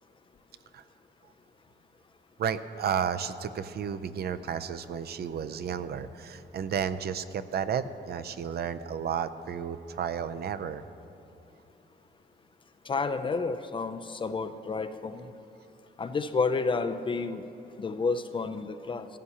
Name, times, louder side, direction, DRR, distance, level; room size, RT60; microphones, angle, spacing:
voice 1, 2.4-10.8, right 8 dB, 60° right, 12 dB, 0.4 m, -32 dB
voice 2, 12.9-15.3 16.0-17.4 17.8-19.1, left 4 dB, 30° left, 9 dB, 0.4 m, -30 dB
16.0 x 14.5 x 2.8 m, 2.8 s
wide cardioid pair, 170°, 18 cm